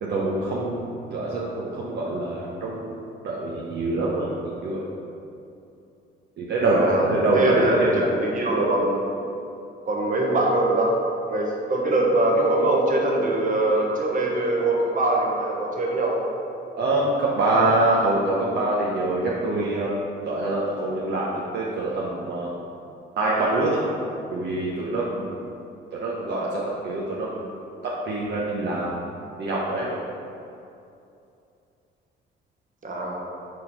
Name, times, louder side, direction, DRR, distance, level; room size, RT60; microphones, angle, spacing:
voice 1, 0.0-4.4 4.6-4.9 6.4-8.0 16.8-20.0 20.2-22.5 23.2-23.8 24.3-25.4 26.0-27.4 27.8-28.9 29.4-30.0, right 2 dB, 60° right, -5 dB, 0.9 m, -25 dB
voice 2, 6.6-7.1 7.3-9.0 9.9-10.9 11.3-16.2 32.8-33.2, right 2 dB, 40° right, -2 dB, 1.3 m, -22 dB
4.8 x 4.3 x 5.5 m, 2.6 s
cardioid pair, 90°, 20 cm